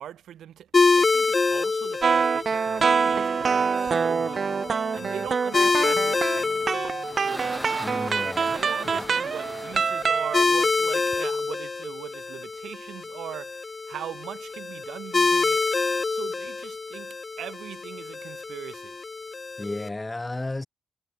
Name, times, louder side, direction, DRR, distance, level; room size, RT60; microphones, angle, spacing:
voice 1, 0.0-6.5 8.5-15.8 16.1-18.9, right 10 dB, 75° right, 3.2 m, -41 dB
sound 1, 0.7-19.9, left 4 dB, 35° left, 0.4 m, -27 dB
sound 2, 2.0-10.4, right 5 dB, 50° right, 1.7 m, -25 dB
sound 3, 6.5-11.2, right 1 dB, 10° right, 1.6 m, -40 dB
voice 2, 7.8-8.6 8.8-9.1 19.6-20.7, left 2 dB, 20° left, 2.8 m, -33 dB
supercardioid pair, 65°, 0 cm